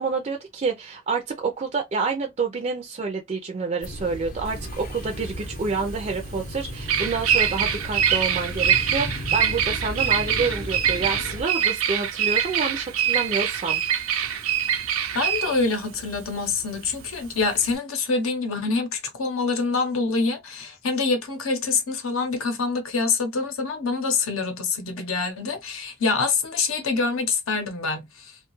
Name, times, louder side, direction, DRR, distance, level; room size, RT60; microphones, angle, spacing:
voice 1, 0.0-13.8, right 4 dB, 35° right, 0.4 m, -28 dB
sound 1, 3.8-11.4, left 1 dB, 40° left, 0.6 m, -35 dB
Bird vocalization bird call bird song, 4.5-17.7, right 9 dB, 90° right, 0.5 m, -25 dB
voice 2, 15.1-28.3, left 4 dB, 75° left, 0.8 m, -25 dB
2.6 x 2.3 x 2.9 m
head